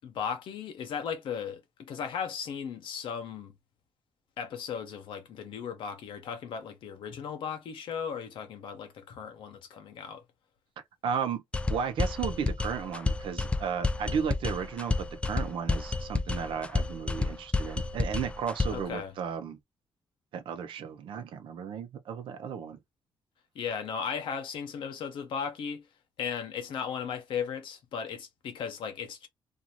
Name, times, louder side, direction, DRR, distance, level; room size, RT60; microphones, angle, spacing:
voice 1, 0.0-3.5 4.4-10.2 18.7-19.1 23.5-25.9 26.2-29.3, left 7 dB, 80° left, 0.9 m, -36 dB
voice 2, 11.0-11.4 11.7-19.6 20.3-22.8, right 7 dB, 85° right, 0.7 m, -34 dB
sound 1, 11.5-18.9, left 3 dB, 15° left, 0.3 m, -30 dB
2.6 x 2.6 x 2.9 m
cardioid pair, 120°, 8 cm